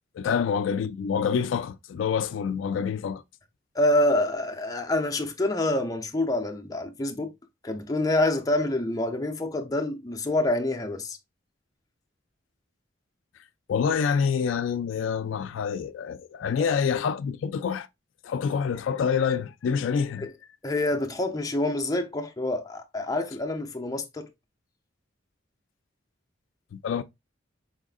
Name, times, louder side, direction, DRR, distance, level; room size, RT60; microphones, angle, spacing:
voice 1, 0.1-3.2 13.7-17.9 18.2-20.3 26.7-27.0, left 6 dB, 85° left, 0.3 m, -27 dB
voice 2, 3.7-7.3 7.6-11.2 16.6-16.7 20.2-20.3 20.6-24.3, left 1 dB, 20° left, 0.6 m, -27 dB
4.3 x 3.6 x 2.4 m
head